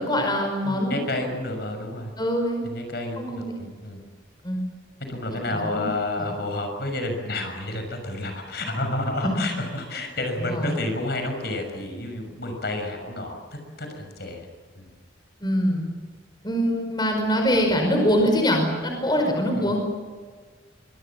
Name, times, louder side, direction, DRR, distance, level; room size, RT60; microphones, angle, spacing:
voice 1, 0.0-1.0 2.2-2.6 3.2-3.5 4.4-4.6 5.5-5.9 6.2-6.3 10.4-10.8 15.4-15.9 16.4-19.8, equal, 20° left, 3 dB, 5.2 m, -23 dB
voice 2, 0.6-2.1 2.6-4.1 5.0-13.4 13.8-14.5 14.8-14.9 19.5-19.7, left 2 dB, 55° left, 4 dB, 6.3 m, -30 dB
25.0 x 23.0 x 7.3 m, 1.6 s
head